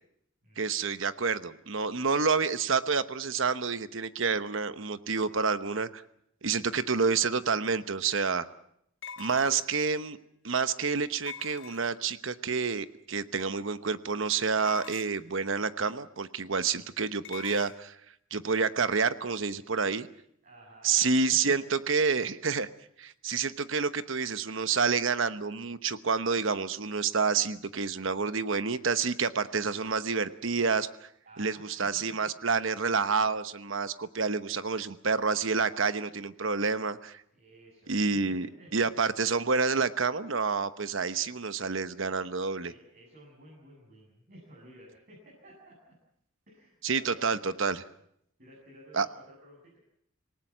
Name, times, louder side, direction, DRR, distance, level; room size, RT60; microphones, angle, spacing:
voice 1, 0.6-6.0 6.4-8.4 9.2-10.2 10.4-17.9 18.3-20.1 20.8-22.7 23.0-31.1 31.4-37.2 37.9-38.5 38.7-42.7 46.8-47.8 48.9-49.1, right 5 dB, 65° right, 12 dB, 1.0 m, -28 dB
sound 1, 7.4-7.5 9.0-9.9 11.3-12.2 14.6-15.3 17.2-17.8, left 7 dB, 60° left, 1.1 m, -44 dB
voice 2, 9.3-9.6 16.7-16.9 20.4-21.7 31.2-32.0 37.3-38.9 42.6-45.8 46.5-47.6 48.4-49.8, right 1 dB, 45° right, -4 dB, 7.8 m, -53 dB
26.5 x 19.0 x 7.4 m, 0.71 s
head